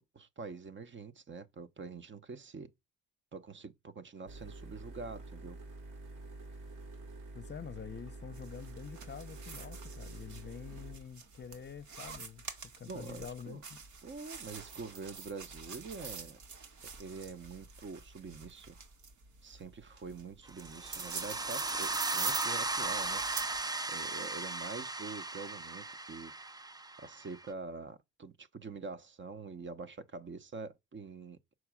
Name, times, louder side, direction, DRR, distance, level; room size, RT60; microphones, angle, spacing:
voice 1, 0.1-2.7 3.3-5.6 12.9-13.6 14.0-16.4 17.0-18.7 19.4-23.2 23.9-26.3 27.0-31.4, right 4 dB, 40° right, 0.9 m, -45 dB
sound 1, 4.3-12.5, right 2 dB, 85° right, 3.6 m, -48 dB
voice 2, 7.3-13.8, left 7 dB, 35° left, 0.7 m, -47 dB
sound 2, 8.3-23.6, right 5 dB, 70° right, 1.8 m, -45 dB
sound 3, 20.6-27.5, right 3 dB, 15° right, 0.5 m, -37 dB
6.2 x 4.6 x 6.1 m
cardioid pair, 90°, 30 cm